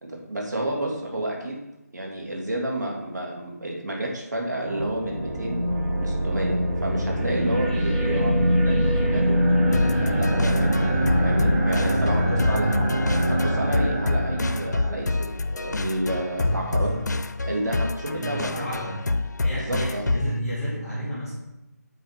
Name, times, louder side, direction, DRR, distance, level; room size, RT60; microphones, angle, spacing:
voice 1, 0.0-1.6 1.9-5.6 6.0-9.4 10.0-12.9 13.3-16.9 17.4-18.8 19.5-20.1, right 1 dB, 85° right, -1 dB, 2.7 m, -30 dB
sound 1, 4.6-15.2, equal, 20° right, 1.4 m, -23 dB
sound 2, 9.7-20.4, left 2 dB, 85° left, 0.6 m, -28 dB
voice 2, 11.9-12.8 16.4-17.1 18.1-19.1 19.4-21.3, equal, ahead, -15 dB, 2.0 m, -31 dB
7.9 x 5.0 x 5.9 m, 0.95 s
figure-of-eight pair, 170°, 9 cm